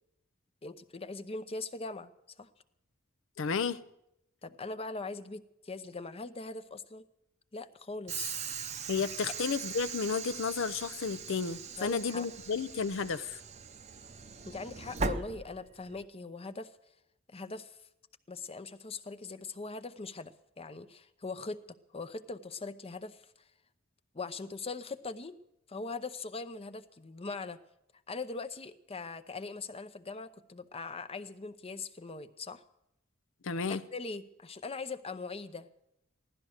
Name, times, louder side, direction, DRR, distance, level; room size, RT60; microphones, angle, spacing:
voice 1, 0.6-2.1 2.4-2.5 4.4-7.0 7.5-8.4 11.8-12.3 14.4-16.7 17.3-17.8 18.3-21.6 21.9-23.2 24.1-25.4 25.7-27.6 28.1-32.6 33.7-35.7, left 3 dB, 30° left, 0.7 m, -41 dB
voice 2, 3.4-3.8 8.9-13.4 33.4-33.8, left 5 dB, 65° left, 0.6 m, -32 dB
Train / Sliding door, 8.1-16.0, right 5 dB, 35° right, 0.7 m, -40 dB
16.5 x 12.0 x 6.4 m
head